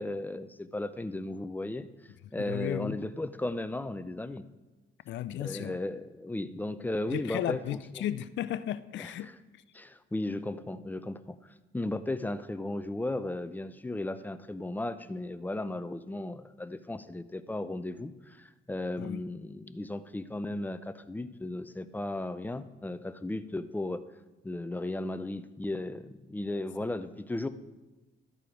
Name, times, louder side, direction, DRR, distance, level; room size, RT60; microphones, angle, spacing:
voice 1, 0.0-1.9 2.3-4.4 5.4-8.0 9.0-9.3 9.7-11.4 11.7-24.0 24.4-27.5, left 2 dB, 10° left, 0.4 m, -35 dB
voice 2, 2.4-3.0 5.1-5.8 7.1-9.3 19.0-19.2, left 11 dB, 70° left, 0.5 m, -34 dB
12.5 x 4.8 x 5.0 m
cardioid pair, 90°, 20 cm